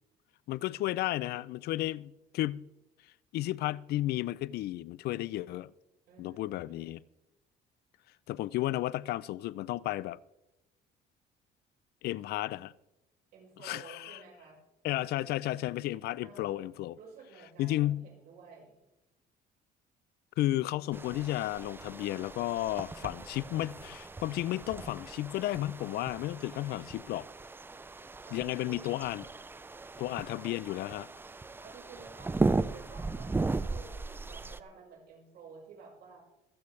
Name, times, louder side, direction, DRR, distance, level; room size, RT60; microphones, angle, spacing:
voice 1, 0.5-2.6 3.3-5.7 6.2-7.0 8.3-10.2 12.0-12.7 13.6-14.2 14.8-17.0 17.6-18.0 20.4-27.3 28.3-29.3 30.0-31.1, left 15 dB, 70° left, 0.4 m, -33 dB
voice 2, 6.1-7.0 13.3-14.6 16.2-16.6 17.0-18.8 28.3-29.1 30.2-30.4 31.6-36.2, right 5 dB, 70° right, 5.0 m, -52 dB
sound 1, 20.9-34.6, right 3 dB, 15° right, 0.4 m, -37 dB
24.0 x 8.5 x 3.2 m
cardioid pair, 110°, 17 cm